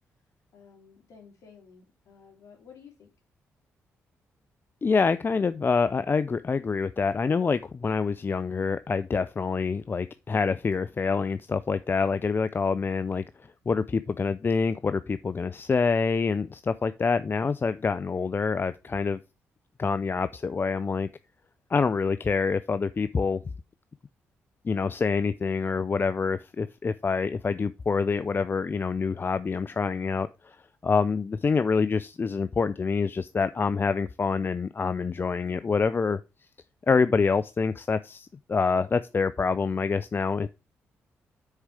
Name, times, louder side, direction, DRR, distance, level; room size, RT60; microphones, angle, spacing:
voice 1, 0.5-3.1, left 6 dB, 65° left, 3.2 m, -53 dB
voice 2, 4.8-13.2 13.7-19.2 19.8-21.1 21.7-23.4 24.6-30.6 30.8-36.2 36.9-40.5, left 5 dB, 35° left, 0.5 m, -26 dB
6.5 x 4.7 x 6.8 m
supercardioid pair, 50°, 6 cm